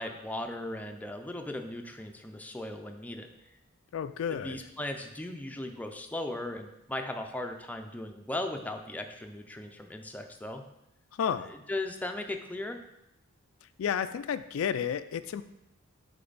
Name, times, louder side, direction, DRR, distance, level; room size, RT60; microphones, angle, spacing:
voice 1, 0.0-3.3 4.3-10.6 11.5-12.8, left 1 dB, 5° left, 4 dB, 0.5 m, -37 dB
voice 2, 3.9-4.6 11.2-11.5 13.8-15.4, left 8 dB, 70° left, 12 dB, 0.3 m, -31 dB
6.6 x 5.2 x 4.0 m, 0.84 s
head